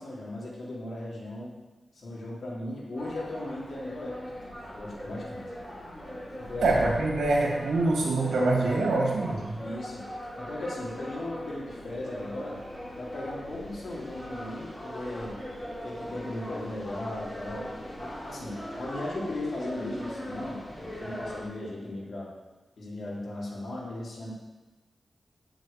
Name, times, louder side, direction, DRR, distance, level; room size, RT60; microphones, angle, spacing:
voice 1, 0.0-1.5 1.9-5.5 6.5-6.8 9.6-12.6 13.0-15.4 15.8-17.7 18.0-22.3 22.8-24.3, left 1 dB, 60° left, -6 dB, 3.5 m, -37 dB
sound 1, 2.9-21.4, equal, 20° left, 3.9 m, -40 dB
voice 2, 6.6-9.6, right 2 dB, 80° right, -2 dB, 2.3 m, -25 dB
8.2 x 6.4 x 7.2 m, 1.2 s
cardioid pair, 70°, 0 cm